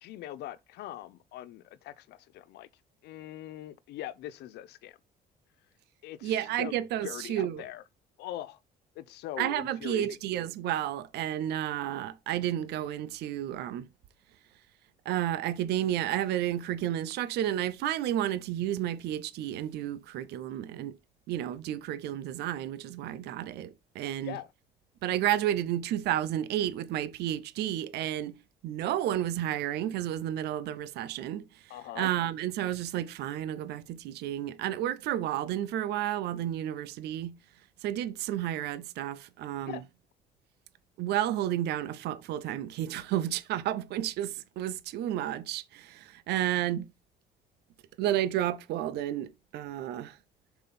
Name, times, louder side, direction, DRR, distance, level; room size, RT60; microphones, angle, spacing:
voice 1, 0.0-2.7 3.0-5.0 6.0-6.7 7.0-7.8 8.2-8.6 8.9-10.2 24.2-24.5 31.7-32.1 39.6-39.8, left 13 dB, 80° left, 0.8 m, -41 dB
voice 2, 6.2-7.6 9.4-13.9 15.0-21.0 21.3-24.4 25.0-28.4 28.6-37.3 37.8-39.8 41.0-46.9 48.0-50.2, right 12 dB, 80° right, 0.8 m, -31 dB
7.1 x 5.6 x 4.3 m
cardioid pair, 110°, 17 cm